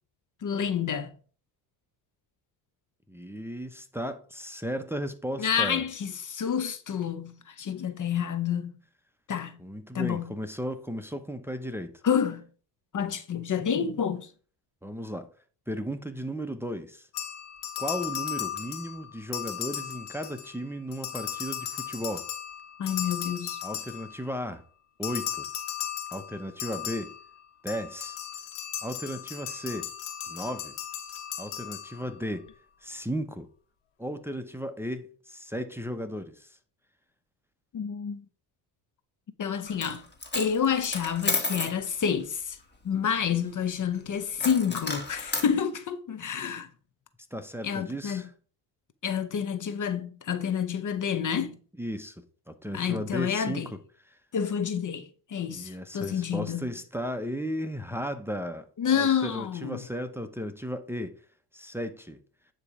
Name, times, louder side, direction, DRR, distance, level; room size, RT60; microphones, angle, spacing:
voice 1, 0.4-1.1 5.4-8.7 9.3-9.6 9.9-10.3 12.0-12.4 12.9-14.3 22.8-23.6 37.7-38.2 39.4-40.0 40.3-42.6 42.8-46.7 47.6-48.2 49.0-51.6 52.7-53.7 54.3-56.7 58.8-59.8, left 7 dB, 40° left, 0.8 m, -29 dB
voice 2, 3.1-5.8 9.6-12.0 14.8-15.3 15.7-17.1 17.8-22.3 23.6-24.6 25.0-25.5 26.1-27.1 27.6-28.2 28.8-29.9 30.3-30.7 31.4-32.5 32.8-33.5 34.0-36.6 47.3-48.3 51.8-53.8 54.1-54.2 55.5-61.1 61.5-62.2, equal, 5° right, 0.8 m, -35 dB
sound 1, 17.1-20.6 20.9-24.4 25.0-32.3, left 10 dB, 85° left, 1.7 m, -36 dB
Coin (dropping), 39.7-40.0 40.2-41.8 44.4-45.5, left 3 dB, 20° left, 2.1 m, -31 dB
9.6 x 3.2 x 4.8 m
supercardioid pair, 75°, 49 cm